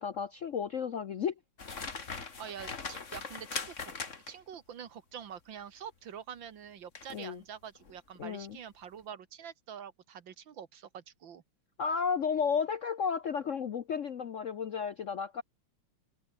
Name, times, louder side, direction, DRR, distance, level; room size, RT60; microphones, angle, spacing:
voice 1, 0.0-1.3 7.1-7.4 8.2-8.6 11.8-15.4, left 6 dB, 60° left, 0.8 m, -33 dB
sound 1, 1.6-4.5 6.9-7.2 7.7-7.9, left 5 dB, 35° left, 2.3 m, -40 dB
voice 2, 2.4-3.9 4.3-11.4, right 8 dB, 65° right, 2.2 m, -46 dB
omnidirectional pair, 2.2 m